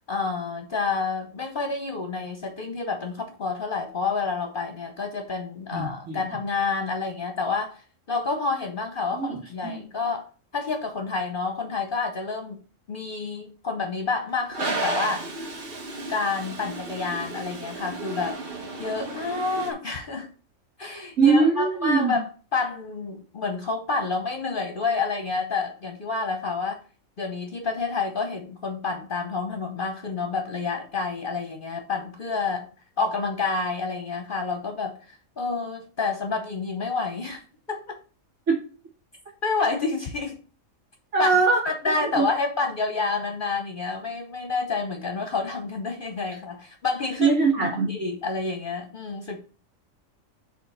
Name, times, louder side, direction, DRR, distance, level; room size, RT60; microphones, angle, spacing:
voice 1, 0.1-7.8 8.1-10.3 10.5-12.6 12.9-15.3 16.1-18.4 18.8-20.3 20.8-26.8 27.2-32.7 33.0-37.4 37.7-38.0 39.4-40.4 41.2-41.3 41.6-49.4, left 4 dB, 45° left, 4 dB, 0.9 m, -29 dB
voice 2, 5.7-6.2 9.1-9.4 9.6-9.7 21.2-22.1 38.5-38.6 41.1-41.6 42.1-42.3 47.2-47.9, right 4 dB, 70° right, -6 dB, 2.4 m, -21 dB
Toilet flush, 14.5-19.7, right 3 dB, 45° right, 1.2 m, -33 dB
5.0 x 3.7 x 5.5 m, 0.37 s
omnidirectional pair, 1.4 m